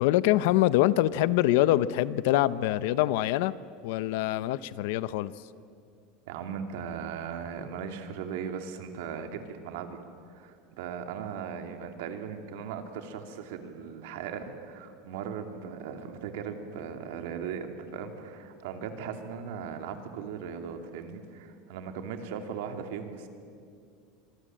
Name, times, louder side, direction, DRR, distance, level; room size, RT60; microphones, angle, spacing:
voice 1, 0.0-3.5 3.8-5.3, left 15 dB, 60° left, 16 dB, 0.7 m, -24 dB
voice 2, 6.3-10.0 10.3-23.3, right 7 dB, 70° right, 6 dB, 2.6 m, -38 dB
26.5 x 23.0 x 7.7 m, 2.3 s
supercardioid pair, 175°, 0 cm